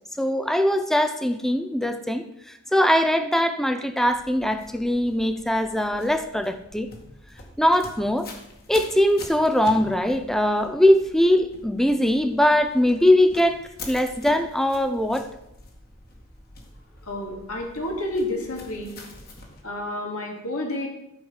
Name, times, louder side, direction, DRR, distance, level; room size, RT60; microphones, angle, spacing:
voice 1, 0.2-2.2 2.7-6.9 7.6-8.3 8.7-13.6 13.9-15.2, left 1 dB, ahead, 8 dB, 0.6 m, -21 dB
sound 1, 4.1-19.6, left 2 dB, 45° left, 2.1 m, -45 dB
voice 2, 17.0-18.9 19.6-20.9, left 1 dB, 80° left, 0 dB, 2.7 m, -30 dB
13.5 x 5.1 x 7.4 m, 0.85 s
head